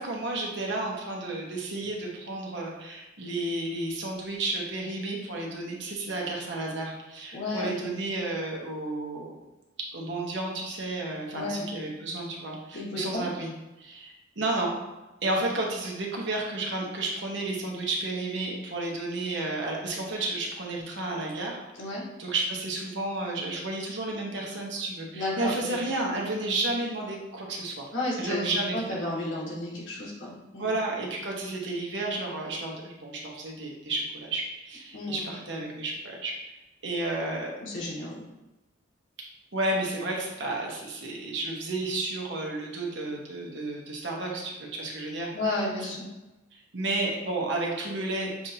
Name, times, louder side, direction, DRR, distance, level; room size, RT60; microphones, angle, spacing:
voice 1, 0.0-9.4 9.9-13.5 13.8-14.7 15.2-21.6 22.2-27.9 28.2-28.8 30.6-36.3 36.8-37.5 39.5-45.3 46.7-48.5, right 2 dB, 65° right, -1 dB, 1.0 m, -32 dB
voice 2, 7.3-7.9 11.3-11.7 12.7-13.2 21.8-22.0 25.1-25.8 27.9-28.4 28.7-30.7 34.9-35.3 37.6-38.2 45.3-46.1, left 2 dB, 85° left, -5 dB, 1.5 m, -32 dB
7.0 x 2.6 x 2.8 m, 1.1 s
head